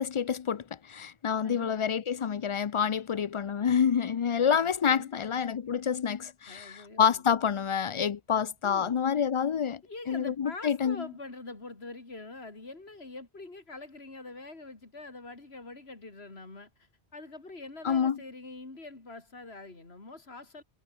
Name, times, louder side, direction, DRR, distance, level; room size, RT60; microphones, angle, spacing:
voice 1, 0.0-9.8 10.1-11.0 17.8-18.2, left 7 dB, 50° left, 0.3 m, -28 dB
voice 2, 1.4-1.8 4.5-5.3 6.5-7.2 8.6-9.1 9.8-20.6, left 3 dB, 70° left, 3.7 m, -45 dB
omnidirectional pair, 1.1 m